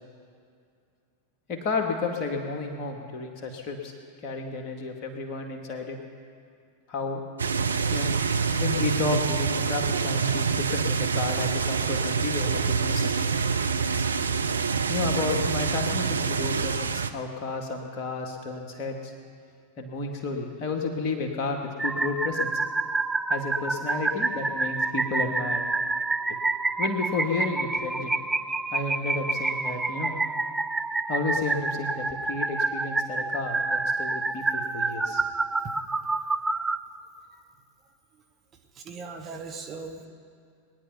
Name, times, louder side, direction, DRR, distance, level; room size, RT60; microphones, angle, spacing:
voice 1, 1.5-3.9 4.2-6.0 6.9-7.2 7.9-8.1 8.4-13.1 14.9-19.1 19.8-22.5 23.3-25.6 26.8-28.2 28.7-30.2 31.1-35.2, left 3 dB, 40° left, 2 dB, 2.2 m, -31 dB
sound 1, 7.4-17.1, right 5 dB, 75° right, 0.6 m, -26 dB
sound 2, 21.8-36.8, right 3 dB, 10° right, 0.4 m, -28 dB
voice 2, 38.7-40.1, right 4 dB, 25° right, 4 dB, 1.7 m, -40 dB
21.5 x 10.5 x 5.7 m, 2.3 s
figure-of-eight pair, 90°, 0 cm